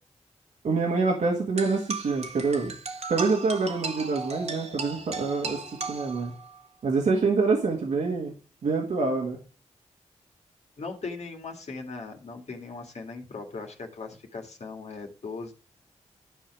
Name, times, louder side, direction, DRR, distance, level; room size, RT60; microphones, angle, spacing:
voice 1, 0.6-2.7 3.1-5.6 5.9-6.3 6.8-8.3 8.6-9.4, right 4 dB, 85° right, 0 dB, 1.8 m, -26 dB
sound 1, 1.6-6.6, right 4 dB, 65° right, 1.5 m, -36 dB
voice 2, 10.8-15.5, left 4 dB, 70° left, 3 dB, 2.1 m, -39 dB
11.0 x 4.9 x 6.0 m, 0.36 s
cardioid pair, 45°, 12 cm